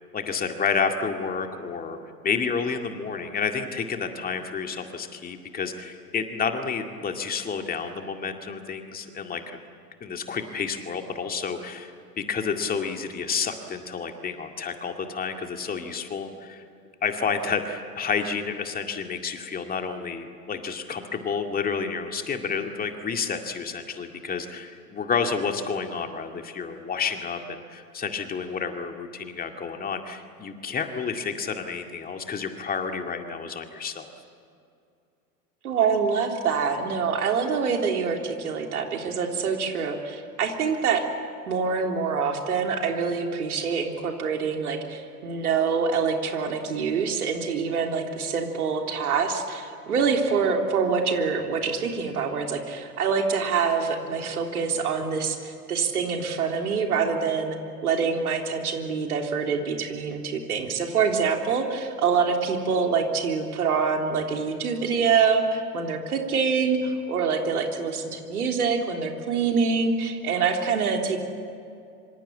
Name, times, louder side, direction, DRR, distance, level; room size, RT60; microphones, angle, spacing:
voice 1, 0.1-2.0 2.2-9.6 10.0-16.6 17.0-34.1, left 5 dB, 20° left, 5 dB, 2.2 m, -30 dB
voice 2, 35.6-41.0 41.5-57.6 57.8-71.2, right 5 dB, 65° right, 3 dB, 3.6 m, -25 dB
25.5 x 25.5 x 8.8 m, 2.4 s
figure-of-eight pair, 95°, 47 cm